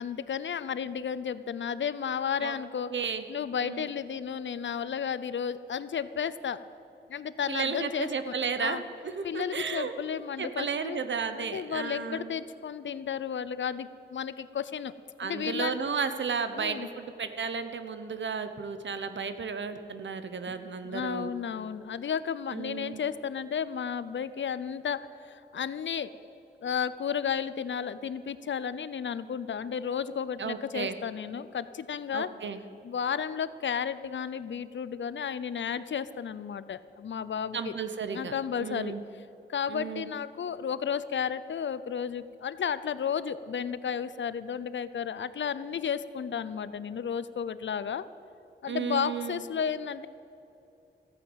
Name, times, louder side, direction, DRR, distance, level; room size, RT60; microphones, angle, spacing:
voice 1, 0.0-2.9 3.3-6.6 7.1-8.8 9.2-11.0 11.3-14.9 15.2-15.8 16.5-16.9 20.5-20.6 20.8-26.1 26.6-32.3 32.8-37.7 38.1-38.9 39.5-48.1 48.6-50.1, left 7 dB, 75° left, 15 dB, 0.6 m, -33 dB
voice 2, 2.9-3.2 3.6-3.9 7.5-8.8 9.0-9.9 10.4-12.3 15.2-21.3 22.5-23.0 30.4-31.0 32.1-32.6 37.5-39.0 39.7-40.1 48.7-49.4, right 5 dB, 75° right, 10 dB, 0.9 m, -33 dB
14.5 x 9.2 x 8.0 m, 2.8 s
wide cardioid pair, 120°, 19 cm